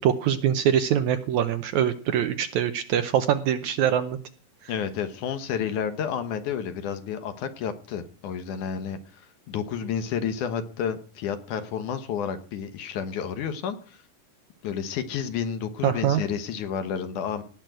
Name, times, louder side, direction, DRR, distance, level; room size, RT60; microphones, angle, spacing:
voice 1, 0.0-4.2 15.8-16.2, right 9 dB, 75° right, 10 dB, 1.8 m, -23 dB
voice 2, 4.7-14.0 14.6-17.4, left 7 dB, 65° left, 9 dB, 2.5 m, -31 dB
18.0 x 6.1 x 9.1 m, 0.40 s
omnidirectional pair, 4.0 m